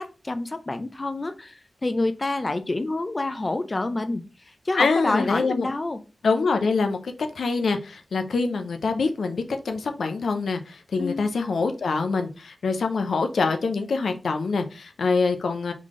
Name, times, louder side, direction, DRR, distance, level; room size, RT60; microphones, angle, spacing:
voice 1, 0.0-6.0 11.0-11.3, left 2 dB, 35° left, 10 dB, 0.4 m, -28 dB
voice 2, 4.8-5.7 6.2-15.7, left 4 dB, 85° left, 6 dB, 0.5 m, -25 dB
3.7 x 3.3 x 3.6 m, 0.32 s
cardioid pair, 60°, 0 cm